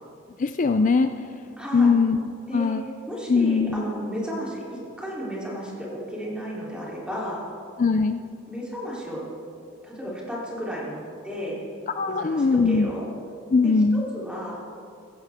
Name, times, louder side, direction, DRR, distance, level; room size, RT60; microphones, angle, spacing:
voice 1, 0.4-1.1 1.7-2.2 2.5-2.9 3.3-3.8 7.8-8.2 12.0-12.9 13.5-14.0, left 4 dB, 40° left, 8 dB, 0.4 m, -20 dB
voice 2, 1.6-2.0 2.5-2.8 3.1-7.4 8.5-9.3 9.8-11.6 12.0-13.0 13.6-14.6, equal, 5° right, -5 dB, 3.4 m, -33 dB
16.0 x 15.5 x 3.6 m, 2.5 s
head